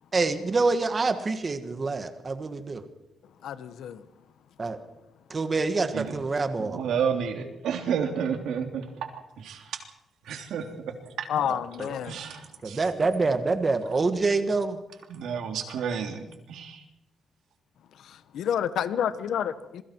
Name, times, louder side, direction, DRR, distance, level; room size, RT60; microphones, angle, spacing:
voice 1, 0.1-2.8 4.6-4.8 5.3-6.8 11.4-11.9 12.6-14.8, right 3 dB, 25° right, 9 dB, 1.5 m, -26 dB
voice 2, 3.4-4.0 11.3-12.2 18.0-19.8, left 9 dB, 70° left, 13 dB, 1.2 m, -29 dB
voice 3, 6.6-8.8 9.4-9.6 10.3-10.6 12.1-12.4 12.7-12.8 15.1-16.2 16.5-16.7, right 7 dB, 85° right, 4 dB, 3.2 m, -30 dB
27.0 x 22.5 x 4.6 m, 0.91 s
wide cardioid pair, 180°, 0 cm